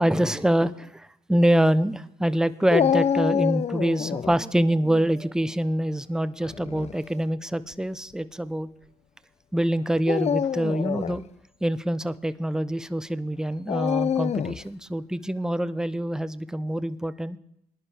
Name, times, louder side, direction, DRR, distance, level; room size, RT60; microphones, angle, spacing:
voice 1, 0.0-8.7 9.5-11.2 11.6-17.4, right 1 dB, 5° right, 14 dB, 0.6 m, -25 dB
Dog, 2.7-4.4 6.4-6.9 7.7-7.8 10.0-11.2 13.7-14.7, left 8 dB, 45° left, 0.4 m, -26 dB
20.0 x 11.0 x 3.4 m, 0.79 s
cardioid pair, 65°, 16 cm